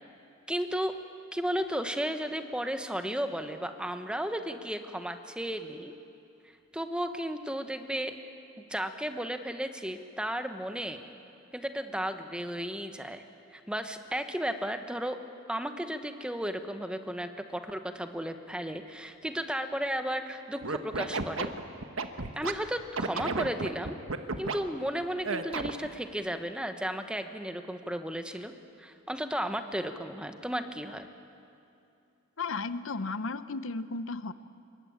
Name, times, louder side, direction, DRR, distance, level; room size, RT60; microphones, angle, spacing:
voice 1, 0.5-0.9 1.3-5.9 6.7-8.1 8.7-11.0 11.5-13.2 13.5-15.2 15.5-21.5 22.4-24.0 24.4-28.5 28.8-31.1, equal, 5° right, 7 dB, 1.2 m, -34 dB
Scratching (performance technique), 20.6-22.5 23.0-24.6 25.2-25.9, right 3 dB, 75° right, 1.4 m, -32 dB
voice 2, 32.4-34.3, left 3 dB, 70° left, 13 dB, 0.8 m, -34 dB
26.0 x 22.5 x 8.8 m, 2.6 s
head